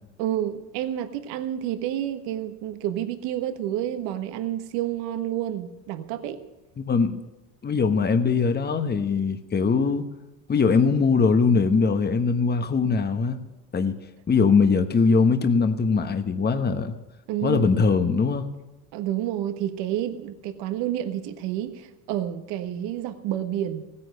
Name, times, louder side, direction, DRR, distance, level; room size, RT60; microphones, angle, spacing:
voice 1, 0.2-6.4 17.3-17.7 18.9-23.8, right 11 dB, 60° right, 9 dB, 1.5 m, -29 dB
voice 2, 6.8-7.2 7.6-10.0 10.5-13.4 13.7-14.0 14.3-16.9 17.4-18.5, left 5 dB, 20° left, 8 dB, 1.2 m, -21 dB
16.0 x 9.9 x 6.6 m, 1.0 s
supercardioid pair, 100°, 48 cm